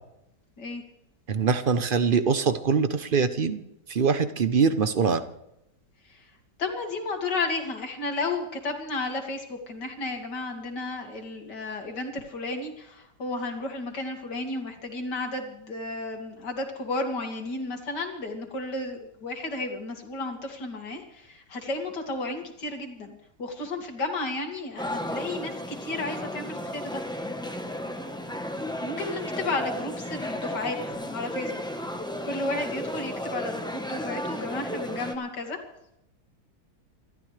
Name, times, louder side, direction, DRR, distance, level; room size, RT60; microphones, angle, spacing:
voice 1, 1.3-3.6 3.9-5.2, right 5 dB, 45° right, 11 dB, 0.8 m, -23 dB
voice 2, 6.6-27.0 28.8-31.6 32.2-35.6, left 2 dB, 75° left, 4 dB, 2.9 m, -33 dB
sound 1, 24.8-35.1, left 1 dB, 5° left, 0.9 m, -34 dB
27.0 x 13.0 x 3.3 m, 0.86 s
omnidirectional pair, 1.9 m